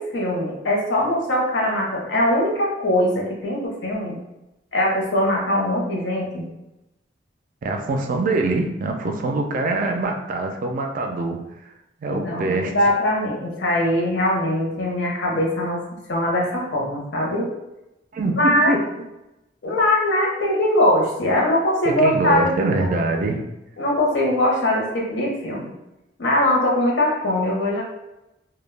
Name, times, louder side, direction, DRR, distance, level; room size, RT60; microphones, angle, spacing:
voice 1, 0.0-4.2 4.7-6.4 12.1-15.8 16.1-17.5 18.4-18.8 19.6-22.7 23.8-25.7 26.2-27.8, left 1 dB, 75° left, -2 dB, 0.7 m, -21 dB
voice 2, 7.6-11.4 11.6-11.7 12.0-12.7 18.1-18.8 21.8-23.4, right 2 dB, 50° right, 4 dB, 0.3 m, -24 dB
2.2 x 2.0 x 3.2 m, 0.94 s
head